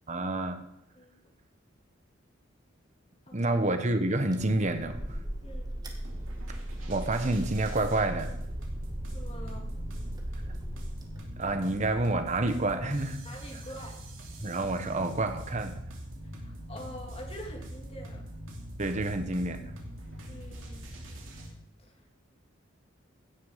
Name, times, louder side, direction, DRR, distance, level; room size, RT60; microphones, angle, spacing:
voice 1, 0.1-0.6 3.3-5.2 6.9-8.3 11.4-13.2 14.4-15.8 18.8-19.7, right 2 dB, 35° right, 8 dB, 1.1 m, -28 dB
sound 1, 4.3-11.7, right 1 dB, 20° right, 1.6 m, -38 dB
voice 2, 5.4-5.7 9.1-9.7 13.2-14.0 16.4-18.2 20.3-21.0 21.8-21.9, equal, 30° left, 0 dB, 2.7 m, -45 dB
sound 2, 6.0-21.5, equal, 90° right, 2.8 m, -43 dB
16.0 x 6.8 x 5.7 m, 0.79 s
head